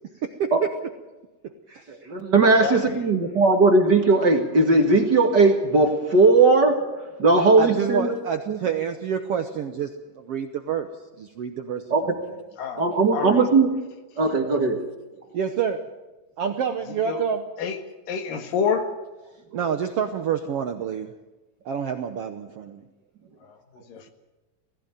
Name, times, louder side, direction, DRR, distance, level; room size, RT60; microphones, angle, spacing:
voice 1, 0.2-0.7 1.7-1.9 7.6-10.9 11.2-12.1 14.6-14.7 15.3-15.8 16.4-17.5 19.5-21.1 21.6-22.8, right 7 dB, 70° right, 7 dB, 1.4 m, -28 dB
voice 2, 1.9-6.8 7.2-8.1 8.5-8.6 11.9-12.0 12.8-13.7 14.2-14.8, right 3 dB, 40° right, 3 dB, 1.7 m, -18 dB
voice 3, 2.6-3.1 12.6-12.8 13.1-13.4 17.1-17.2 17.6-17.8 18.1-18.9 23.4-24.1, left 6 dB, 85° left, 7 dB, 3.4 m, -28 dB
19.0 x 16.0 x 9.0 m, 1.1 s
omnidirectional pair, 3.8 m